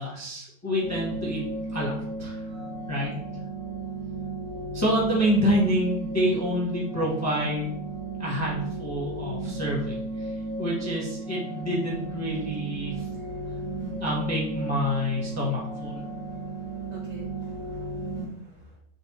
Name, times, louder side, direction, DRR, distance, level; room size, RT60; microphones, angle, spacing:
voice 1, 0.0-1.4 1.7-1.9 2.2-2.4 2.9-3.1 4.7-7.8 8.2-10.3 10.6-13.1 14.0-16.0, equal, 20° left, -4 dB, 0.5 m, -27 dB
sound 1, 0.8-18.3, right 2 dB, 65° right, 1.7 m, -34 dB
voice 2, 12.8-14.0 14.9-15.0 15.2-15.4 16.0-18.8, right 1 dB, 45° right, -5 dB, 0.5 m, -52 dB
4.1 x 3.2 x 3.0 m, 0.72 s
omnidirectional pair, 1.8 m